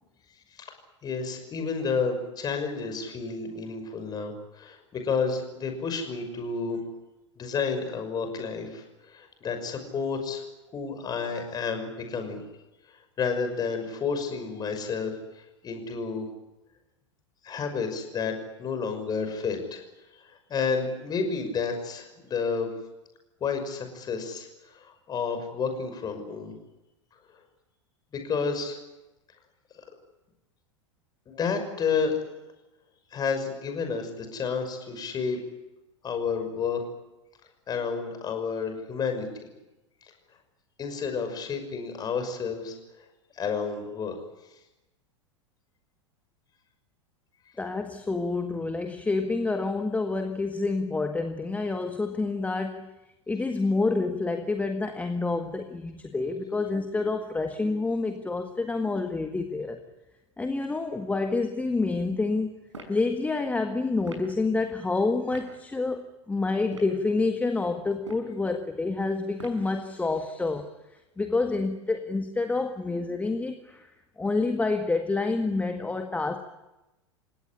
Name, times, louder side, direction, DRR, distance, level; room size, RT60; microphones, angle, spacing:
voice 1, 1.0-6.8 7.4-10.4 10.7-12.4 12.9-15.1 15.6-16.3 17.4-18.3 18.6-19.8 20.5-22.7 23.4-26.5 28.2-28.8 31.3-32.2 33.1-35.4 36.0-36.8 37.7-39.3 40.8-42.7 43.3-44.2, left 5 dB, 25° left, 6 dB, 6.0 m, -30 dB
voice 2, 47.6-52.9 53.3-59.8 60.4-62.5 62.9-70.7 71.2-73.9 74.2-76.4, left 3 dB, 10° left, 6 dB, 1.7 m, -28 dB
sound 1, 62.7-63.0 64.0-64.3 65.3-65.5 66.6-67.0 67.9-68.3 69.4-69.7, right 2 dB, 75° right, 6.1 m, -43 dB
29.0 x 17.5 x 9.9 m, 1.0 s
figure-of-eight pair, 90°, 16 cm